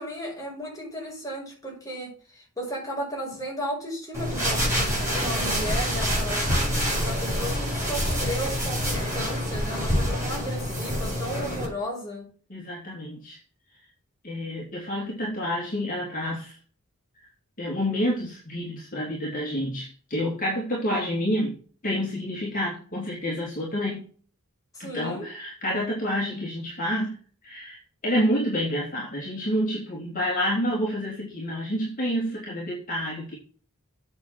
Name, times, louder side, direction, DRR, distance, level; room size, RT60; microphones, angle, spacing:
voice 1, 0.0-6.5 6.9-12.3 24.7-25.3, equal, 15° left, -2 dB, 5.8 m, -35 dB
sound 1, 4.1-11.6, equal, 15° right, 5.8 m, -26 dB
voice 2, 12.5-13.4 14.2-16.6 17.6-21.5 21.8-24.1 24.8-27.1 27.4-33.4, equal, 40° left, -3 dB, 3.1 m, -28 dB
8.6 x 7.1 x 5.9 m, 0.41 s
head